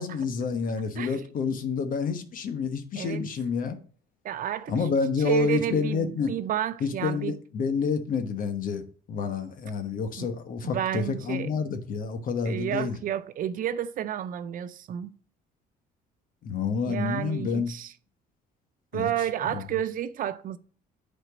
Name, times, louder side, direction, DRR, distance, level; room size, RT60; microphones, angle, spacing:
voice 1, 0.0-3.8 4.7-6.3 6.8-13.0 16.4-17.7 18.9-19.1 19.4-19.6, left 5 dB, 55° left, 1.2 m, -29 dB
voice 2, 4.2-4.7 5.2-7.4 10.2-10.3 10.6-11.5 12.5-15.1 16.8-17.9 18.9-20.6, right 10 dB, 55° right, 0.6 m, -31 dB
8.0 x 4.4 x 6.1 m
cardioid pair, 110°, 17 cm